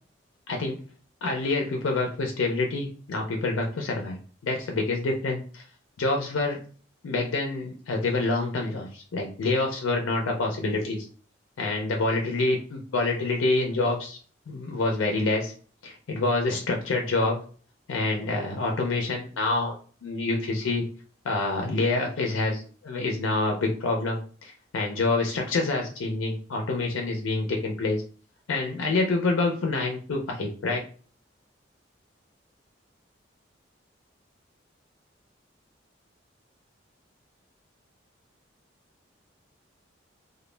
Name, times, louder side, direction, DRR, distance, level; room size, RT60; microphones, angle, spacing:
voice 1, 1.2-5.6 6.0-6.6 7.0-11.1 11.6-14.2 14.5-15.5 15.8-17.4 17.9-19.7 20.0-20.8 21.2-28.0 28.5-30.8, left 2 dB, 90° left, 2 dB, 0.4 m, -27 dB
2.1 x 2.1 x 3.1 m, 0.41 s
head